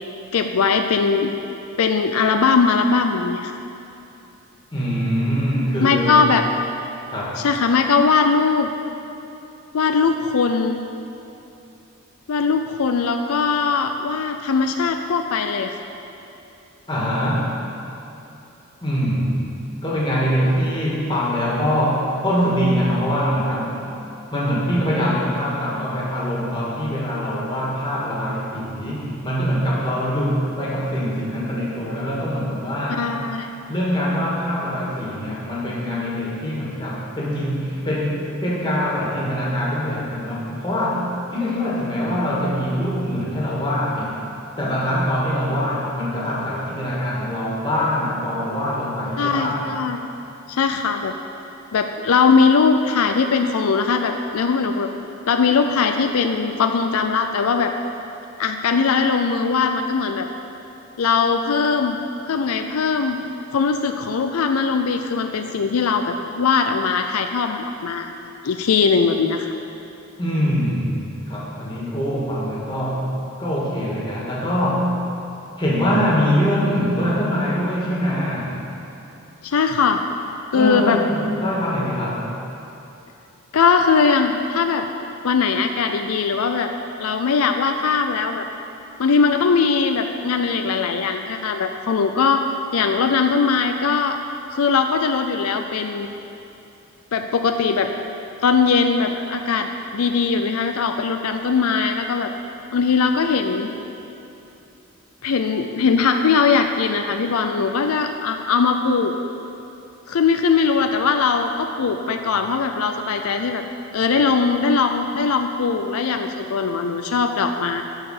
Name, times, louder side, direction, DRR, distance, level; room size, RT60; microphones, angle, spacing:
voice 1, 0.3-1.3 1.8-3.5 5.8-6.4 7.4-8.7 9.7-10.8 12.3-15.7 32.9-33.5 49.2-50.0 50.5-51.1 51.7-54.9 55.3-57.7 58.4-60.3 61.0-62.0 62.2-63.2 63.5-68.1 68.4-69.5 79.4-80.0 80.5-81.0 81.2-81.3 83.5-84.9 85.2-86.7 87.0-88.5 89.0-92.4 92.7-94.2 94.5-96.1 97.1-97.9 98.4-102.3 102.7-103.7 105.2-109.1 110.1-113.6 113.9-117.8, left 5 dB, 85° left, 6 dB, 0.4 m, -20 dB
voice 2, 4.7-6.3 7.1-7.4 16.9-17.5 18.8-19.4 19.8-23.8 24.3-33.0 33.7-41.1 41.3-44.2 44.6-49.6 70.2-73.1 73.4-75.0 75.6-78.5 80.5-82.2, equal, 20° left, -6 dB, 1.9 m, -23 dB
11.0 x 4.9 x 6.5 m, 2.8 s
head